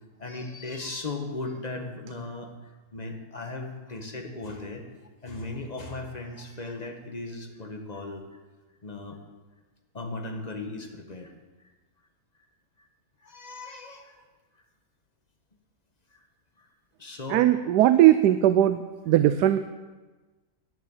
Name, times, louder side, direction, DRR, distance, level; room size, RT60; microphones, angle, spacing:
voice 1, 0.2-2.5 2.9-4.9 5.2-8.3 8.8-9.2 9.9-11.3 13.2-14.1 16.1-16.2 17.0-17.5, left 2 dB, 25° left, 3 dB, 1.5 m, -37 dB
voice 2, 17.3-19.7, right 13 dB, 85° right, 11 dB, 1.2 m, -19 dB
11.0 x 11.0 x 7.3 m, 1.2 s
omnidirectional pair, 1.7 m